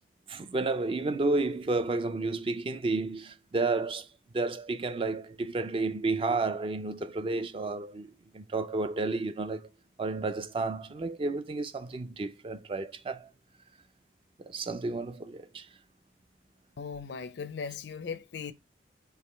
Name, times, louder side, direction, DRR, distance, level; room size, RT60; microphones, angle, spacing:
voice 1, 0.3-4.1 4.3-9.7 10.0-13.3 14.4-15.7, right 3 dB, 30° right, 0.3 m, -31 dB
voice 2, 16.8-18.5, left 5 dB, 75° left, 0.5 m, -38 dB
4.7 x 2.9 x 3.2 m
head